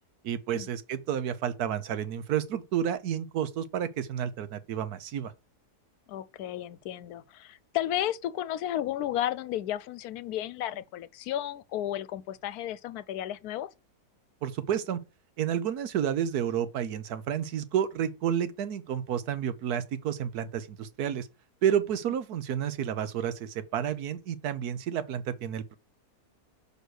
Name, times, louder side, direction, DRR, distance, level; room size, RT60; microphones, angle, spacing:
voice 1, 0.2-5.3 14.4-15.0 15.4-21.3 21.6-25.7, right 9 dB, 75° right, 1.4 m, -30 dB
voice 2, 6.1-13.7, left 12 dB, 75° left, 1.1 m, -33 dB
6.3 x 5.3 x 6.4 m
omnidirectional pair, 1.7 m